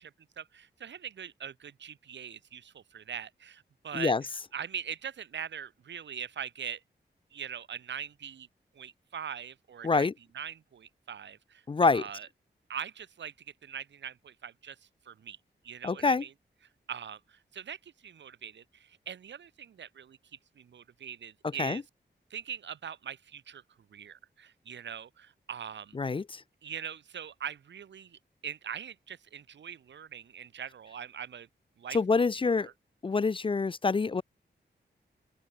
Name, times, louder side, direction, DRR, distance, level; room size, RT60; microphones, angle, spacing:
voice 1, 0.0-4.1 4.5-6.8 7.3-8.5 8.7-10.1 10.3-12.3 12.7-13.3 13.6-14.8 15.1-15.4 15.6-16.3 16.9-20.2 20.6-21.8 22.3-23.6 23.9-26.0 26.6-31.5 31.8-32.7, right 8 dB, 85° right, 1.0 m, -42 dB
voice 2, 11.7-12.0 15.8-16.2 21.6-21.8 26.0-26.4 31.9-32.7 33.0-34.2, left 4 dB, 30° left, 0.4 m, -26 dB
open air
wide cardioid pair, 105°, 18 cm